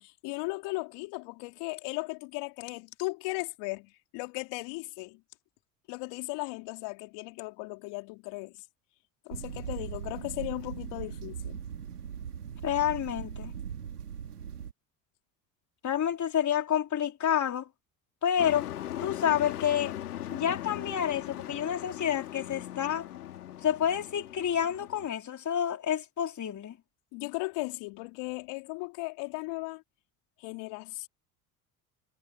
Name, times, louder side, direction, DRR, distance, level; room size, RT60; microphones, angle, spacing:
voice 1, 0.0-5.2 5.9-8.6 9.3-11.6 27.1-29.8 30.4-31.1, left 26 dB, 65° left, 3.5 m, -37 dB
sound 1, 9.3-14.7, right 8 dB, 90° right, 2.8 m, -39 dB
voice 2, 12.6-13.5 15.8-17.7 18.2-18.7 19.0-19.9 20.3-23.1 23.6-26.8, left 9 dB, 40° left, 3.8 m, -29 dB
Truck, 18.4-25.1, left 12 dB, 80° left, 2.2 m, -39 dB
hypercardioid pair, 65°, 45 cm